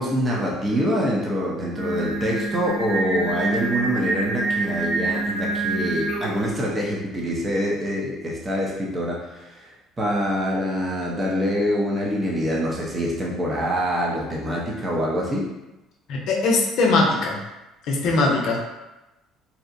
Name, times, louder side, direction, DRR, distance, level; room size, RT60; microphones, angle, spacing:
voice 1, 0.0-9.7 10.0-15.5 18.0-18.1, equal, 30° right, -3 dB, 0.6 m, -25 dB
Singing, 1.8-6.5, right 3 dB, 85° right, 0.7 m, -26 dB
voice 2, 16.1-17.4 17.8-18.6, left 3 dB, 70° left, -1 dB, 0.5 m, -20 dB
2.7 x 2.0 x 2.6 m, 0.99 s
supercardioid pair, 75°, 0 cm